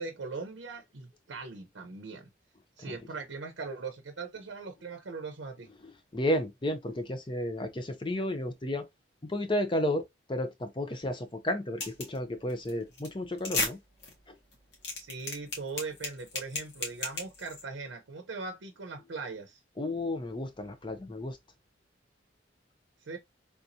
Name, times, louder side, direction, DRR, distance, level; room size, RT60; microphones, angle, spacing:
voice 1, 0.0-2.3 2.8-5.7 14.9-19.6 23.0-23.2, right 4 dB, 85° right, 0.6 m, -40 dB
voice 2, 5.8-8.9 9.3-13.8 19.8-21.4, left 1 dB, 25° left, 0.6 m, -32 dB
sound 1, 11.8-12.2 12.5-12.7 13.0-13.1 13.4-13.7 14.0-14.1 14.5-17.6, left 3 dB, 65° left, 1.5 m, -33 dB
3.5 x 2.9 x 2.6 m
head